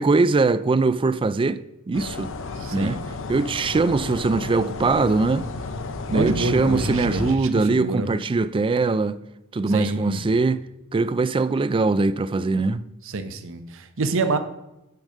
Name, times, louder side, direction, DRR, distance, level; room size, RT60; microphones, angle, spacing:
voice 1, 0.0-2.3 2.7-3.0 3.3-5.5 6.1-9.2 9.5-10.6 10.9-12.8, right 3 dB, 25° right, 0.3 m, -21 dB
sound 1, 1.9-7.4, left 3 dB, 60° left, 0.6 m, -32 dB
voice 2, 2.6-3.0 6.1-8.1 9.7-10.2 13.0-14.4, right 3 dB, 65° right, 0.8 m, -26 dB
9.3 x 5.4 x 5.0 m
head